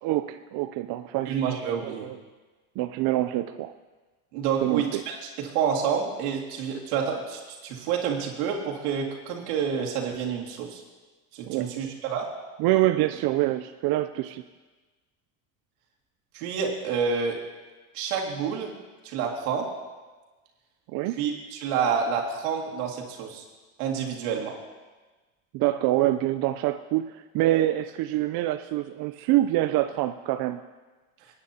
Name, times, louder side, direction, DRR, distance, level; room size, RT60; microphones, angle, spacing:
voice 1, 0.0-1.4 1.8-2.2 2.8-3.7 4.6-5.0 11.5-11.7 12.6-14.4 20.9-21.2 25.5-30.6, right 15 dB, 55° right, 9 dB, 0.6 m, -25 dB
voice 2, 1.3-2.1 4.3-10.8 11.3-12.3 16.3-17.4 17.9-18.7 19.0-19.7 21.2-23.4 23.8-24.6, right 7 dB, 80° right, -1 dB, 2.3 m, -28 dB
20.5 x 9.6 x 2.8 m, 1.3 s
supercardioid pair, 105°, 44 cm